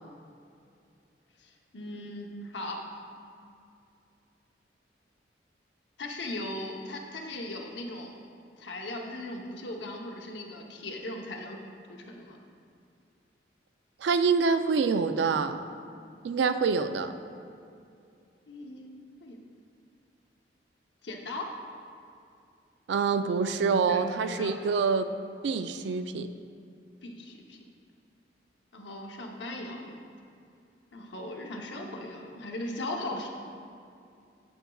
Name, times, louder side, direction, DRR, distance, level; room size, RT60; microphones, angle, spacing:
voice 1, 1.4-2.8 6.0-8.1 8.6-11.6 11.9-12.4 18.5-18.9 19.2-19.4 21.0-21.5 23.9-24.6 27.0-27.6 28.7-30.0 30.9-33.3, left 1 dB, 80° left, 1 dB, 0.8 m, -38 dB
voice 2, 14.0-15.6 16.2-17.1 22.9-25.1 25.4-26.3, right 5 dB, 70° right, 10 dB, 0.3 m, -26 dB
8.0 x 7.9 x 2.3 m, 2.5 s
head